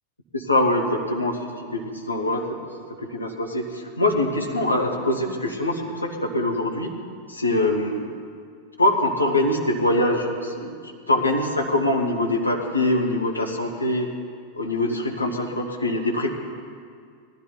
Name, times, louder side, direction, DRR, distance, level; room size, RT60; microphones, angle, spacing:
voice 1, 0.3-2.7 3.0-6.9 7.3-8.1 8.8-10.8 11.1-14.1 14.6-16.3, left 1 dB, 80° left, 1 dB, 1.4 m, -23 dB
19.0 x 13.0 x 4.0 m, 2.1 s
figure-of-eight pair, 90°, 0 cm